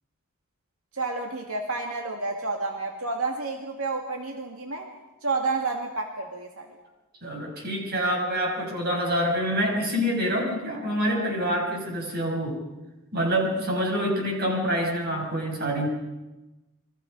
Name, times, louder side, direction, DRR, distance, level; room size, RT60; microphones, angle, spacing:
voice 1, 0.9-4.9 5.2-6.7, right 3 dB, 85° right, 2 dB, 2.4 m, -30 dB
voice 2, 7.2-12.6 13.1-15.9, equal, 45° right, 1 dB, 6.8 m, -26 dB
29.0 x 23.5 x 5.5 m, 1.1 s
head